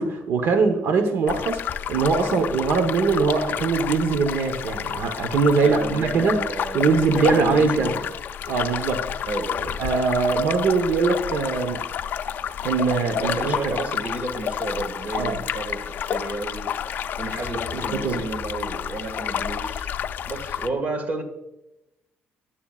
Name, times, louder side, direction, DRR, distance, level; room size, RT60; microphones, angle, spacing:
voice 1, 0.0-6.4 6.7-8.0 8.5-9.0 9.8-11.8 12.6-13.7 15.2-15.4 17.9-18.3, right 4 dB, 65° right, 1.0 m, -22 dB
sound 1, 1.3-20.7, left 8 dB, 50° left, 0.5 m, -30 dB
voice 2, 5.6-8.1 9.2-9.8 13.1-19.9 20.2-21.2, right 2 dB, 35° right, 1.7 m, -32 dB
14.5 x 10.0 x 2.4 m
cardioid pair, 150°, 4 cm